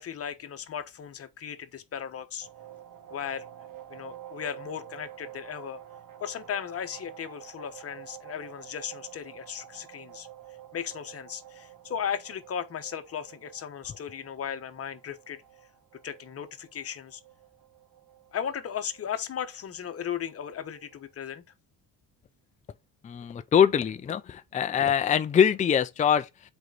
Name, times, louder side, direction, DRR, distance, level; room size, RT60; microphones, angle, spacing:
voice 1, 0.0-2.5 3.1-3.4 3.9-5.8 6.2-10.3 10.7-15.4 16.0-17.2 18.3-21.4, left 8 dB, 40° left, 1.2 m, -36 dB
sound 1, 2.4-21.0, right 11 dB, 65° right, 1.6 m, -49 dB
voice 2, 23.0-26.3, left 8 dB, 20° left, 0.4 m, -23 dB
8.0 x 4.5 x 4.0 m
cardioid pair, 105°, 35 cm